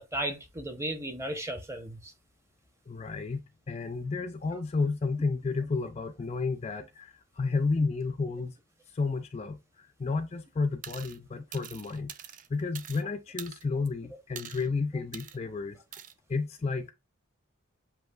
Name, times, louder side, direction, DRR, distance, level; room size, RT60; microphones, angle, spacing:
voice 1, 0.0-2.1, right 1 dB, 15° right, 0.7 m, -35 dB
voice 2, 2.9-3.4 3.7-8.5 8.9-12.1 12.5-15.8 16.3-16.9, left 4 dB, 30° left, 0.3 m, -31 dB
sound 1, 10.8-11.2 11.5-13.0 13.4-13.9 14.4-14.7 15.1-15.4 15.9-16.1, right 9 dB, 40° right, 0.4 m, -44 dB
7.7 x 2.7 x 2.3 m
head